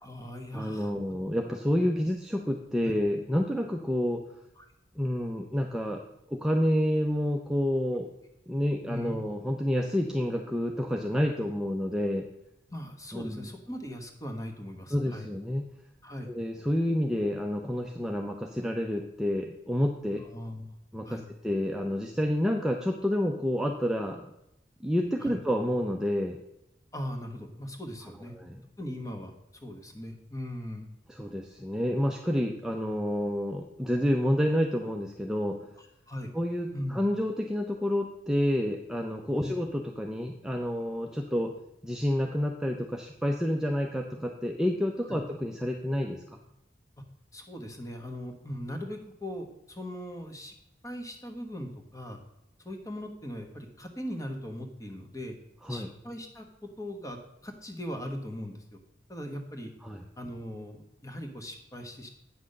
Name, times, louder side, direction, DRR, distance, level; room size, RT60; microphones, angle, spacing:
voice 1, 0.0-0.9 1.7-1.9 2.8-3.0 4.6-4.7 8.9-9.2 12.7-15.3 16.0-16.3 20.2-20.6 21.0-21.3 25.2-25.4 26.9-28.3 28.8-30.9 35.8-36.3 36.7-37.0 39.4-39.5 45.1-45.2 47.3-50.5 50.8-52.2 52.6-55.4 55.7-58.8 59.1-59.7 60.2-62.1, equal, 20° left, 4 dB, 1.3 m, -39 dB
voice 2, 0.5-4.2 5.0-8.1 8.5-12.2 13.1-13.5 14.9-15.7 16.3-20.2 20.9-24.3 24.8-26.4 28.3-28.6 31.1-35.7 36.3-41.5 41.8-46.2 55.6-55.9 59.8-60.0, equal, 5° right, 1 dB, 0.5 m, -29 dB
8.5 x 6.1 x 6.6 m, 0.83 s
head